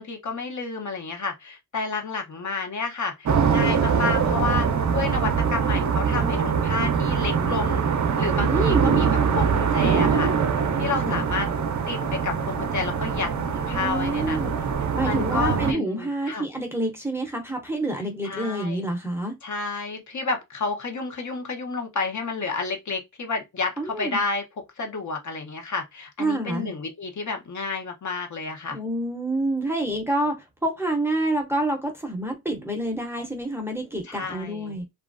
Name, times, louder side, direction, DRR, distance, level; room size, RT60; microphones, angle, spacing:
voice 1, 0.0-7.8 8.2-10.3 10.8-11.5 11.9-14.6 15.0-16.5 18.2-18.8 19.4-28.8 34.0-34.8, left 4 dB, 50° left, 0.7 m, -30 dB
sound 1, 3.3-15.7, right 6 dB, 50° right, 0.5 m, -23 dB
voice 2, 8.5-9.0 11.0-11.2 13.7-14.5 14.9-19.4 23.8-24.2 26.2-26.7 28.7-34.8, right 1 dB, 5° right, 0.6 m, -27 dB
2.9 x 2.4 x 2.4 m
wide cardioid pair, 135°, 37 cm